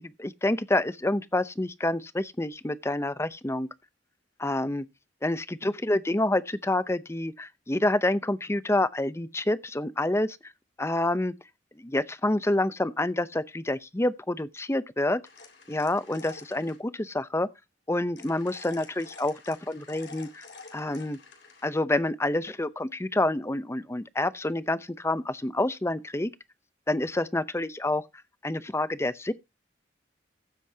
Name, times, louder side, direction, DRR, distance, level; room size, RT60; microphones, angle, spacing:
voice 1, 0.0-3.7 4.4-4.9 5.2-10.4 10.8-11.3 11.8-15.2 15.7-17.5 17.9-20.5 20.7-21.2 21.6-26.3 26.9-28.0 28.4-29.3, left 1 dB, 15° left, 0.6 m, -28 dB
sound 1, 15.2-16.8 18.2-21.7, left 4 dB, 65° left, 3.5 m, -49 dB
15.0 x 8.2 x 2.8 m
head